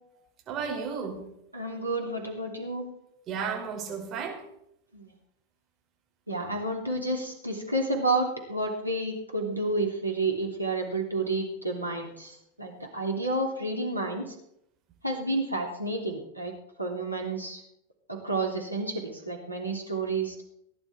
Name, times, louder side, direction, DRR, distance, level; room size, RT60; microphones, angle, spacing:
voice 1, 0.5-1.3 3.3-4.4, right 6 dB, 30° right, 0 dB, 5.5 m, -33 dB
voice 2, 1.5-2.9 4.9-5.1 6.3-14.3 15.0-16.5 16.8-17.6 18.1-20.4, right 2 dB, 85° right, 0 dB, 3.3 m, -30 dB
19.5 x 11.0 x 4.5 m, 0.76 s
figure-of-eight pair, 90°, 0 cm